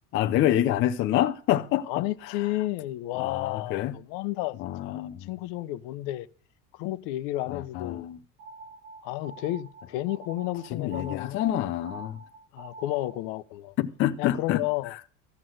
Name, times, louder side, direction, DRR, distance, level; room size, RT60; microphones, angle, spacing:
voice 1, 0.1-2.5 3.1-4.0 4.6-5.3 7.5-8.2 10.7-12.2 13.8-14.6 14.9-15.0, left 12 dB, 35° left, 0.5 m, -27 dB
voice 2, 1.9-6.3 6.7-8.1 9.0-11.7 12.5-13.7 14.2-14.9, left 16 dB, 65° left, 0.8 m, -32 dB
sound 1, 8.4-13.3, right 3 dB, 90° right, 2.0 m, -46 dB
14.0 x 5.9 x 7.7 m
cardioid pair, 175°, 35 cm